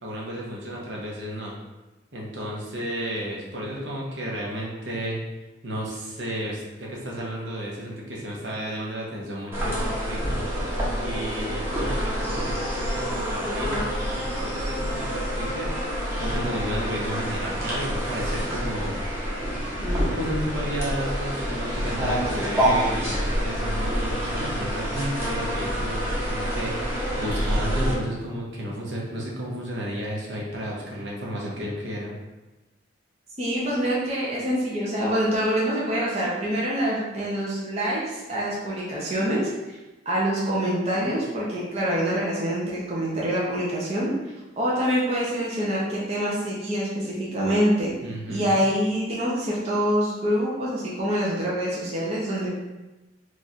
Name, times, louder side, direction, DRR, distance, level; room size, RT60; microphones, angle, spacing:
voice 1, 0.0-1.5 2.1-5.2 5.6-10.4 11.0-15.8 16.2-19.0 19.8-32.1 48.0-48.7, equal, 70° right, -3 dB, 0.9 m, -32 dB
sound 1, 9.5-27.9, equal, 15° right, 0.9 m, -27 dB
voice 2, 33.4-39.8 40.1-44.1 44.6-47.9 48.3-52.5, equal, 35° right, -6 dB, 0.7 m, -25 dB
3.2 x 2.4 x 4.1 m, 1.1 s
head